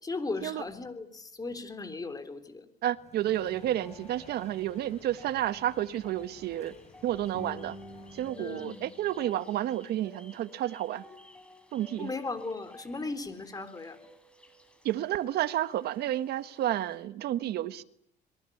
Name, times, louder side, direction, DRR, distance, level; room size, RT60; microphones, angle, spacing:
voice 1, 0.0-2.7 8.4-8.9 12.0-14.0, left 3 dB, 20° left, 3.7 m, -37 dB
voice 2, 2.8-6.7 7.0-7.8 8.1-11.0 11.7-12.1 14.8-17.8, right 12 dB, 70° right, 1.5 m, -31 dB
sound 1, 2.9-8.3, left 5 dB, 40° left, 5.4 m, -55 dB
sound 2, 3.2-17.0, left 1 dB, 5° left, 6.7 m, -52 dB
27.5 x 22.5 x 8.7 m
cardioid pair, 110°, 17 cm